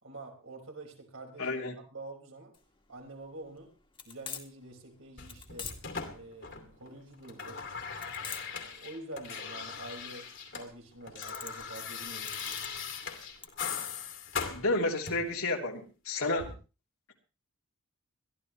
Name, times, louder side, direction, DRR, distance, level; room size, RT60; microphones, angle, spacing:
voice 1, 0.0-1.5 1.9-2.5 2.9-3.7 4.0-5.7 6.1-7.7 8.2-10.3 10.5-12.6, right 2 dB, 70° right, 2 dB, 5.0 m, -47 dB
voice 2, 1.4-1.7 14.5-16.5, left 2 dB, 85° left, 1 dB, 3.2 m, -31 dB
sound 1, 2.5-13.5, left 6 dB, 25° left, 2.0 m, -46 dB
sound 2, 5.2-6.9 7.1-10.7 10.9-15.4 16.4-16.5, left 6 dB, 60° left, 2.6 m, -40 dB
22.5 x 13.5 x 3.2 m, 0.33 s
head